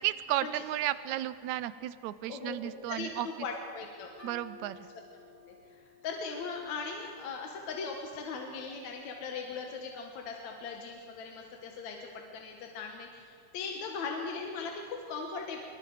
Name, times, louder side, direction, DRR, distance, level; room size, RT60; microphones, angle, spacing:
voice 1, 0.0-3.3 4.2-4.9, right 13 dB, 85° right, 14 dB, 2.1 m, -33 dB
voice 2, 2.3-4.1 5.4-15.6, left 4 dB, 75° left, 1 dB, 2.8 m, -39 dB
sound 1, 4.2-7.7, left 3 dB, 55° left, 5.6 m, -55 dB
24.5 x 23.0 x 4.9 m, 2.3 s
omnidirectional pair, 3.3 m